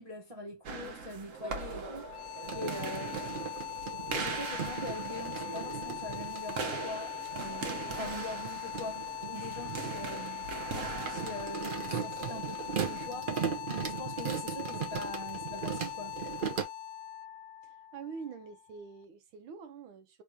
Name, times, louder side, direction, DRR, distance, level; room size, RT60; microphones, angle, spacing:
voice 1, 0.0-2.2 2.5-3.5 4.1-10.5 10.9-13.4 14.0-16.2, left 1 dB, 20° right, 1.0 m, -43 dB
sound 1, 0.6-13.1, right 4 dB, 55° right, 1.0 m, -41 dB
sound 2, 2.0-18.9, left 10 dB, 80° left, 1.3 m, -41 dB
sound 3, 2.4-6.6 7.2-16.6, right 7 dB, 70° right, 0.5 m, -38 dB
voice 2, 17.6-20.2, right 5 dB, 90° right, 1.6 m, -45 dB
3.8 x 2.8 x 4.8 m
omnidirectional pair, 2.2 m